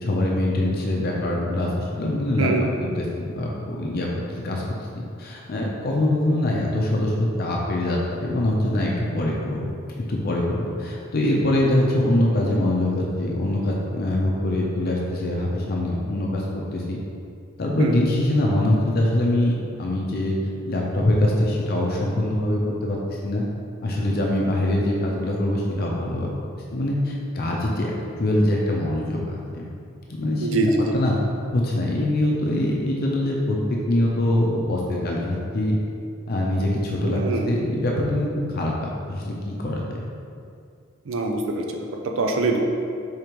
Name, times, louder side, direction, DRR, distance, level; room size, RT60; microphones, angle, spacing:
voice 1, 0.0-2.5 2.8-4.8 5.2-9.7 10.0-17.0 17.6-20.4 20.7-23.4 23.8-26.3 26.7-27.9 28.2-29.6 30.2-31.2 31.5-35.8 36.3-38.3 38.5-40.0, left 1 dB, 50° left, -2 dB, 0.5 m, -23 dB
voice 2, 2.4-2.7 17.8-18.0 30.4-30.9 37.0-37.6 41.1-41.6 41.9-42.6, right 2 dB, 75° right, 2 dB, 0.5 m, -23 dB
5.1 x 3.5 x 3.0 m, 2.4 s
head